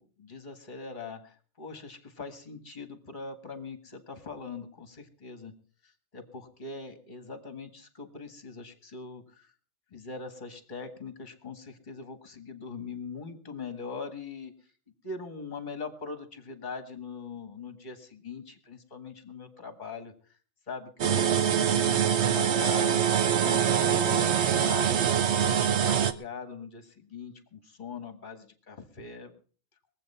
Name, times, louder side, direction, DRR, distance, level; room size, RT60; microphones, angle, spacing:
voice 1, 0.0-5.5 5.8-9.5 9.9-14.5 15.0-20.1 20.7-21.5 21.7-25.0 25.4-29.3, left 4 dB, 40° left, 9 dB, 1.8 m, -41 dB
sound 1, 21.0-26.1, right 8 dB, 65° right, 1.1 m, -24 dB
21.5 x 7.8 x 5.5 m, 0.42 s
omnidirectional pair, 1.2 m